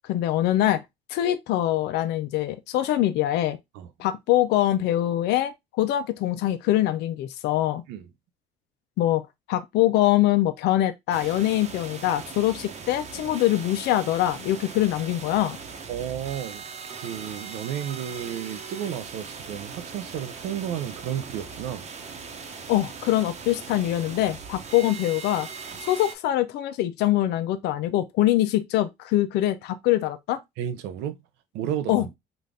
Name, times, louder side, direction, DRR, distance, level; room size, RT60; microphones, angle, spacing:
voice 1, 0.1-0.8 1.1-3.6 4.0-7.8 9.0-15.6 22.7-25.5 25.8-30.4 31.9-32.1, left 14 dB, 80° left, 0.5 m, -23 dB
sound 1, 11.1-26.2, right 5 dB, 40° right, 0.9 m, -40 dB
voice 2, 15.9-16.6 16.9-21.9 30.6-31.2 31.5-32.1, right 10 dB, 90° right, 0.6 m, -32 dB
4.0 x 2.4 x 3.2 m
cardioid pair, 110°, 17 cm